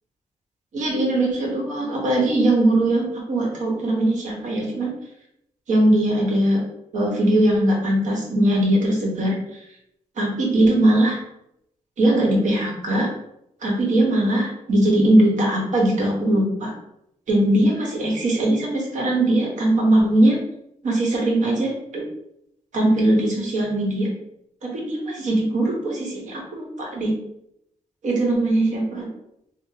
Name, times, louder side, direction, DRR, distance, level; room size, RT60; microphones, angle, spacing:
voice 1, 0.7-4.9 5.7-6.6 6.9-9.4 10.2-11.2 12.0-13.1 13.6-16.7 17.3-20.4 20.8-22.0 22.7-24.1 24.6-27.1 28.0-29.1, right 1 dB, 70° right, -1 dB, 1.0 m, -20 dB
3.5 x 2.0 x 2.8 m, 0.78 s
cardioid pair, 110°, 13 cm